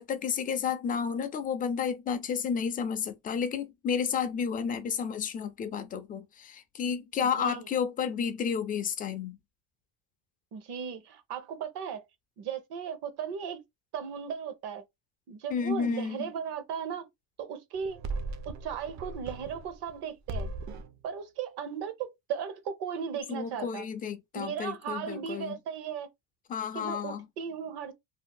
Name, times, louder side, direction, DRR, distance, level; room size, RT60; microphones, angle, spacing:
voice 1, 0.0-9.4 15.5-16.3 23.3-25.6 26.5-27.3, left 7 dB, 20° left, 0.3 m, -31 dB
voice 2, 10.5-12.0 12.4-13.6 13.9-14.8 15.3-17.1 17.4-18.0 18.4-20.5 21.0-23.8 24.3-26.1 26.7-27.9, right 7 dB, 60° right, 0.9 m, -36 dB
sound 1, 17.8-20.0 20.3-21.0, right 2 dB, 40° right, 0.5 m, -38 dB
2.7 x 2.1 x 3.6 m
cardioid pair, 135°, 44 cm